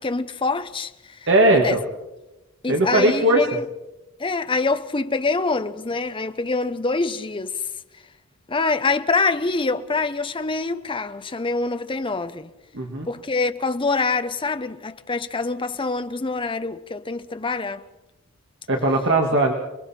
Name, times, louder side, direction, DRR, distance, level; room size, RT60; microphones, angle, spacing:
voice 1, 0.0-1.2 1.5-1.8 2.6-3.6 4.2-7.6 8.5-12.5 13.1-17.8, left 3 dB, 25° left, 0.7 m, -25 dB
voice 2, 1.3-1.8 2.7-3.4 12.7-13.1 18.7-19.5, right 1 dB, 55° right, 1.9 m, -18 dB
29.5 x 20.5 x 4.4 m
head